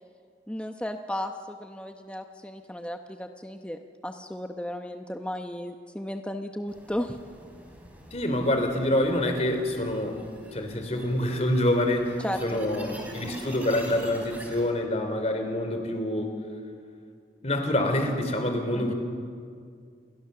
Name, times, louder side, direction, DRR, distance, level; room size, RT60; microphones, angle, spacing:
voice 1, 0.5-7.2 12.2-12.7 18.7-18.9, left 1 dB, 5° left, 5 dB, 0.9 m, -35 dB
sound 1, 6.7-14.7, right 1 dB, 10° right, 4.1 m, -46 dB
voice 2, 8.1-10.1 10.5-16.4 17.4-18.9, left 1 dB, 40° left, 6 dB, 3.4 m, -26 dB
29.0 x 23.0 x 6.8 m, 2.2 s
head